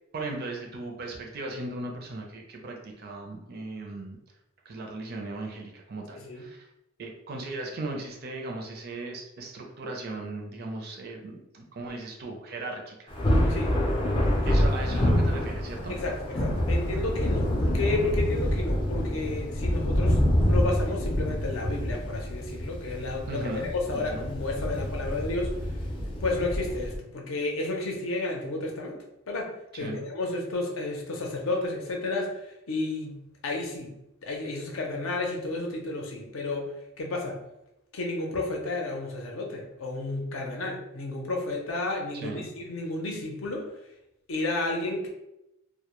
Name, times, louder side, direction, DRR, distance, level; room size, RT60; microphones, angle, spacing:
voice 1, 0.1-4.2 4.7-6.7 7.0-13.1 14.4-15.9 23.3-23.7 23.9-24.3 29.8-30.0 42.2-42.5, right 2 dB, 50° right, 1 dB, 0.4 m, -37 dB
Thunder, 13.1-27.0, equal, 25° left, 0.4 m, -27 dB
voice 2, 15.9-23.5 23.9-25.5 26.2-29.0 29.3-34.0 34.2-36.7 37.0-37.4 37.9-43.7 44.3-45.1, left 2 dB, 80° left, 1 dB, 0.5 m, -32 dB
2.1 x 2.1 x 2.9 m, 0.88 s
head